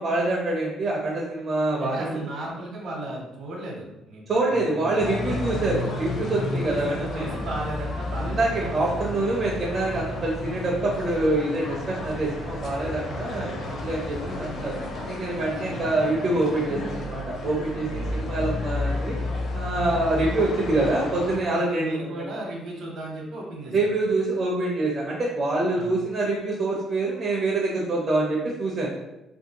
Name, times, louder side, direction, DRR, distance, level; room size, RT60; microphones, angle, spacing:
voice 1, 0.0-2.2 4.3-7.3 8.2-14.7 15.1-19.2 19.5-22.3 23.7-28.9, right 2 dB, 30° right, -4 dB, 0.5 m, -26 dB
voice 2, 1.8-5.6 6.4-9.2 13.1-13.5 15.6-16.0 17.9-18.3 21.6-24.0 25.7-26.0, right 2 dB, 55° right, -1 dB, 0.8 m, -36 dB
sound 1, 5.0-21.4, left 2 dB, 45° left, 0.5 m, -32 dB
2.8 x 2.6 x 2.7 m, 0.95 s
cardioid pair, 170°, 0 cm